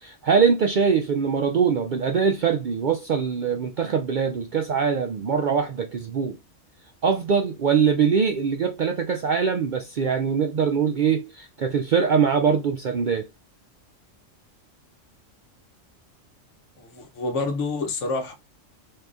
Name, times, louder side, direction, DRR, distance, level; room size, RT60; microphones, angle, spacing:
voice 1, 0.0-6.4 7.0-13.3, right 6 dB, 65° right, 0.5 m, -22 dB
voice 2, 16.8-18.3, left 3 dB, 75° left, 1.3 m, -28 dB
4.7 x 3.5 x 2.5 m
omnidirectional pair, 1.3 m